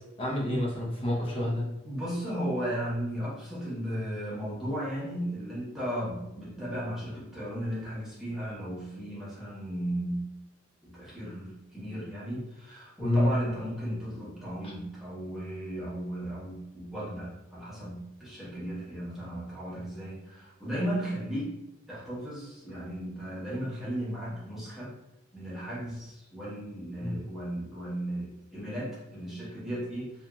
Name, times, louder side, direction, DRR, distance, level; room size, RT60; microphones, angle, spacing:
voice 1, 0.2-1.7 13.0-13.3 14.6-14.7 27.0-27.1, left 1 dB, 30° left, -4 dB, 0.7 m, -28 dB
voice 2, 1.5-10.2 10.8-21.5 21.9-24.9 25.3-30.1, equal, ahead, -9 dB, 0.9 m, -35 dB
2.8 x 2.6 x 2.3 m, 0.89 s
head